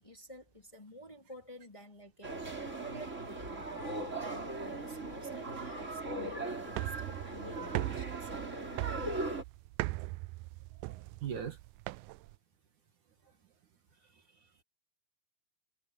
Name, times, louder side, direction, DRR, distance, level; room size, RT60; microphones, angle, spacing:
voice 1, 0.0-8.3 13.9-14.6, right 1 dB, 10° left, 2.9 m, -52 dB
sound 1, 2.2-9.4, right 2 dB, 20° right, 3.6 m, -39 dB
sound 2, 6.7-12.4, right 20 dB, 85° right, 1.8 m, -39 dB
voice 2, 10.8-11.6, right 8 dB, 60° right, 3.0 m, -40 dB
omnidirectional pair, 4.2 m